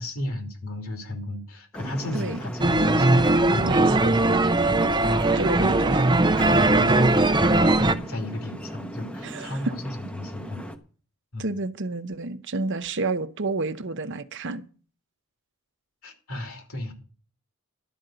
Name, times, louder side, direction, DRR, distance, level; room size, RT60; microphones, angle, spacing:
voice 1, 0.0-4.4 4.7-5.3 5.6-5.9 6.4-10.6 11.3-11.5 16.0-16.9, left 1 dB, 70° left, 2.9 m, -34 dB
sound 1, 1.7-10.8, equal, 5° left, 0.9 m, -38 dB
sound 2, 2.6-7.9, right 2 dB, 20° right, 0.6 m, -20 dB
voice 2, 3.6-4.2 5.4-6.1 6.5-7.1 9.2-9.7 11.4-14.6, right 3 dB, 55° right, 0.8 m, -30 dB
12.0 x 5.4 x 8.9 m
head